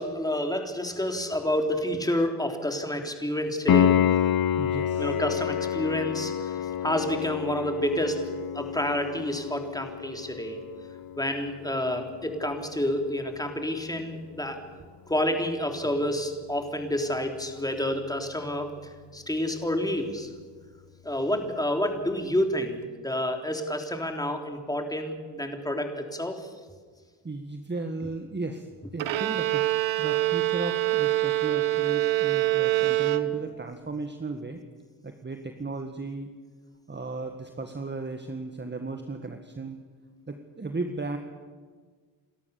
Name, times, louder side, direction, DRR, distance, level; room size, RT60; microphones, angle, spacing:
voice 1, 0.0-4.0 5.0-8.2 8.5-10.6 11.2-14.6 15.1-20.3 21.0-26.5, left 1 dB, 5° left, 4 dB, 3.4 m, -29 dB
Piano, 3.7-14.3 17.6-17.7, left 9 dB, 45° left, 1.0 m, -29 dB
voice 2, 4.6-5.1 15.8-16.2 20.2-20.3 27.2-28.7 28.9-29.7 30.0-34.6 35.0-36.3 36.9-39.8 40.3-41.2, right 3 dB, 20° right, 6 dB, 1.7 m, -35 dB
Bowed string instrument, 29.0-33.7, right 16 dB, 65° right, 1.3 m, -25 dB
29.0 x 13.0 x 7.0 m, 1.5 s
supercardioid pair, 55°, 49 cm